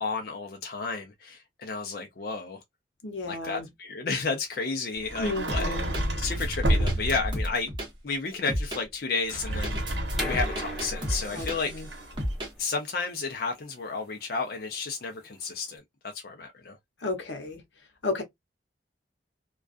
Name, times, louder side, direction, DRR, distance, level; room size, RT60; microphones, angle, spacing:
voice 1, 0.0-2.6 3.3-5.8 6.2-7.7 8.0-11.7 12.6-15.8 16.1-16.8, left 4 dB, 55° left, 0.5 m, -32 dB
voice 2, 3.0-3.7 5.2-5.9 11.3-11.9 17.0-17.6 18.0-18.2, left 2 dB, 90° left, 0.8 m, -33 dB
Sliding door, 5.0-7.5 9.2-12.3, right 1 dB, 80° right, 0.9 m, -30 dB
sound 1, 5.5-6.0 6.4-7.9 8.5-8.8 9.3-11.9 12.2-12.5, equal, 25° right, 0.8 m, -31 dB
sound 2, 10.1-15.7, left 1 dB, ahead, 1.0 m, -41 dB
2.3 x 2.3 x 2.3 m
head